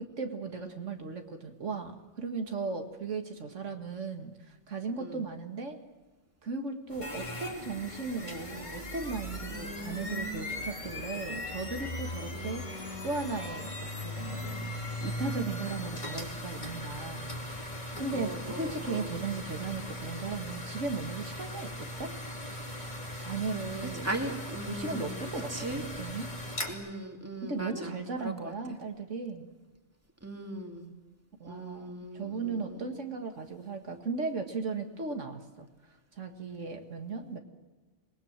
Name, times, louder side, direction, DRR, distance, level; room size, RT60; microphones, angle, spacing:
voice 1, 0.0-5.8 6.4-14.7 15.0-17.4 18.0-22.1 23.2-24.1 24.7-26.3 27.4-29.5 31.4-35.7 36.2-37.4, right 4 dB, 85° right, 4 dB, 2.1 m, -36 dB
sound 1, 6.9-26.7, left 1 dB, 40° left, 2.9 m, -39 dB
voice 2, 9.5-10.5 12.3-13.1 18.1-19.1 24.0-25.8 26.7-27.9 28.2-28.5 30.2-30.8 31.5-33.0, right 1 dB, 10° right, 2 dB, 2.4 m, -39 dB
26.5 x 20.0 x 7.4 m, 1.2 s
omnidirectional pair, 1.2 m